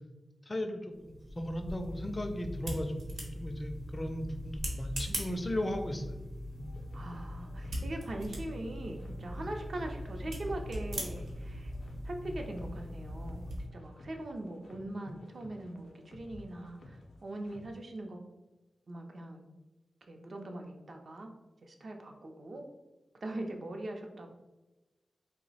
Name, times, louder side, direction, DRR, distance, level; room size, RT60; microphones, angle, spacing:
voice 1, 0.5-6.2, left 1 dB, 25° left, 5 dB, 0.4 m, -36 dB
sound 1, 0.9-13.7, equal, 80° right, 0.8 m, -40 dB
sound 2, 6.6-17.9, left 1 dB, 85° left, 0.5 m, -52 dB
voice 2, 6.9-11.7 12.0-18.3 18.9-19.4 20.0-21.3 21.6-22.7 23.2-24.3, right 1 dB, 55° right, 3 dB, 0.5 m, -41 dB
3.0 x 2.0 x 3.9 m, 1.1 s
wide cardioid pair, 105°, 0 cm